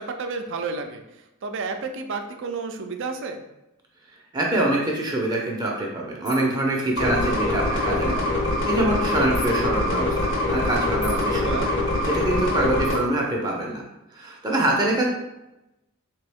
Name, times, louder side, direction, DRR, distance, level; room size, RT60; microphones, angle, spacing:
voice 1, 0.0-3.4 11.4-11.7, right 4 dB, 60° right, 6 dB, 0.4 m, -31 dB
voice 2, 4.3-8.4 8.6-11.6 12.0-13.8 14.1-15.1, right 1 dB, 20° right, -2 dB, 0.6 m, -25 dB
sound 1, 6.2-6.6 9.3-9.5 11.0-11.3 12.8-13.0, left 3 dB, 85° left, 1.5 m, -39 dB
sound 2, 7.0-13.0, left 1 dB, 60° left, 0.9 m, -24 dB
3.6 x 3.0 x 3.4 m, 0.93 s
head